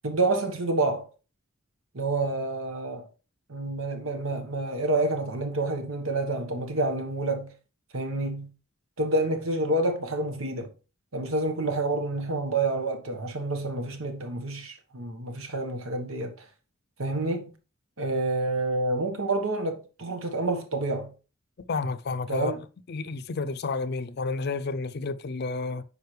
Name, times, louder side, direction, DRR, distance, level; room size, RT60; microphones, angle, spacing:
voice 1, 0.0-1.1 1.9-3.1 3.5-7.5 7.9-8.5 9.0-10.7 11.1-16.4 17.0-17.5 18.0-21.1 22.3-22.6, right 2 dB, 85° right, 1.3 m, -28 dB
voice 2, 21.7-22.5 22.9-25.8, left 3 dB, 50° left, 0.5 m, -30 dB
9.4 x 5.1 x 3.2 m
head